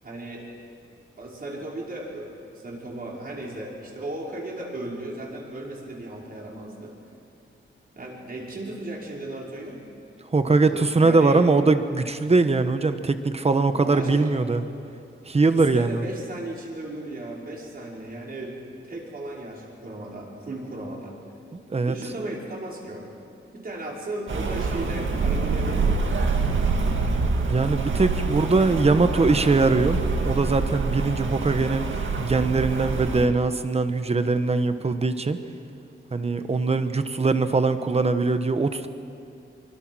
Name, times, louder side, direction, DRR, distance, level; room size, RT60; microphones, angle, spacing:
voice 1, 0.0-0.5 1.2-6.9 8.0-9.8 10.6-11.4 13.8-14.3 15.5-18.6 18.8-21.1 21.9-23.1 23.5-26.2, right 2 dB, 45° right, -3 dB, 5.5 m, -36 dB
voice 2, 10.3-14.6 15.3-16.0 21.5-21.9 27.5-30.0 30.2-31.9 32.2-35.4 36.1-38.9, right 3 dB, 30° right, 9 dB, 1.2 m, -21 dB
Rain, 24.3-33.3, right 4 dB, 70° right, 2.1 m, -26 dB
25.5 x 24.5 x 6.3 m, 2.5 s
wide cardioid pair, 135°, 21 cm